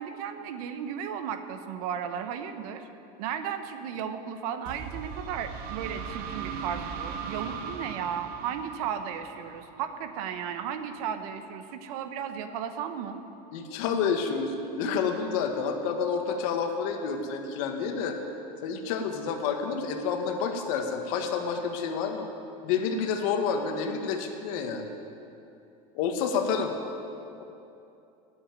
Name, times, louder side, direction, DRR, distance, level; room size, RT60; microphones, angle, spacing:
voice 1, 0.0-2.9 3.2-13.2, right 8 dB, 75° right, 9 dB, 1.0 m, -35 dB
sound 1, 4.7-10.3, right 6 dB, 50° right, 0.9 m, -38 dB
voice 2, 13.5-18.2 18.6-22.3 22.6-24.9 25.9-26.7 27.4-27.5, left 6 dB, 70° left, 5 dB, 1.5 m, -29 dB
9.8 x 8.5 x 9.1 m, 2.8 s
supercardioid pair, 130°, 19 cm